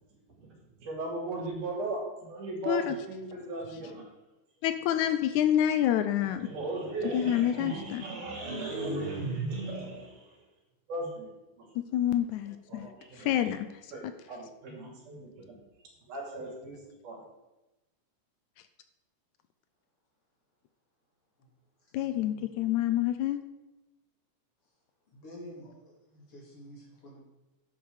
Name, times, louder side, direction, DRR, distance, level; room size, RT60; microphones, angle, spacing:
voice 1, 0.8-4.1 6.3-10.4 10.9-11.3 11.6-11.7 12.7-13.3 13.9-15.6 16.1-16.8 17.0-17.2, right 2 dB, 80° right, -2 dB, 4.5 m, -37 dB
voice 2, 2.7-3.0 4.6-6.5 7.1-8.0 11.8-12.9 13.2-13.7 21.9-23.4, left 11 dB, 80° left, 11 dB, 1.9 m, -27 dB
voice 3, 21.9-22.4 25.1-25.7 26.1-27.2, equal, 45° left, -2 dB, 3.5 m, -48 dB
11.0 x 8.3 x 4.9 m, 1.0 s
omnidirectional pair, 3.5 m